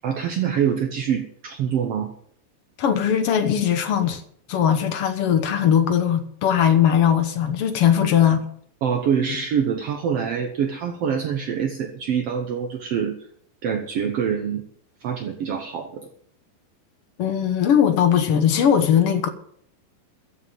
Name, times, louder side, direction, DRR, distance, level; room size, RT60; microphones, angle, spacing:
voice 1, 0.0-2.1 8.8-13.3 13.6-14.6 15.0-16.1, right 7 dB, 65° right, 1.5 m, -25 dB
voice 2, 2.8-4.2 4.5-8.4 17.2-19.3, left 9 dB, 65° left, 1.5 m, -19 dB
15.0 x 6.9 x 9.0 m
omnidirectional pair, 4.2 m